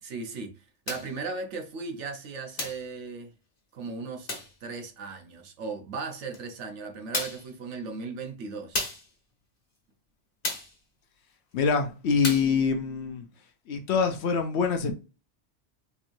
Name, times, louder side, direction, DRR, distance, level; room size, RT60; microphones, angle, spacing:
voice 1, 0.0-3.3 3.7-4.3 4.6-8.8, right 4 dB, 70° right, 1.0 m, -37 dB
sound 1, 0.9-1.2 2.6-2.9 4.3-4.6 6.3-6.4 7.1-7.5 8.7-9.1 10.4-10.8 12.2-12.6, left 2 dB, 45° left, 1.4 m, -33 dB
voice 2, 11.5-13.2 13.7-14.9, left 5 dB, 65° left, 0.8 m, -25 dB
4.4 x 3.0 x 2.6 m
omnidirectional pair, 1.3 m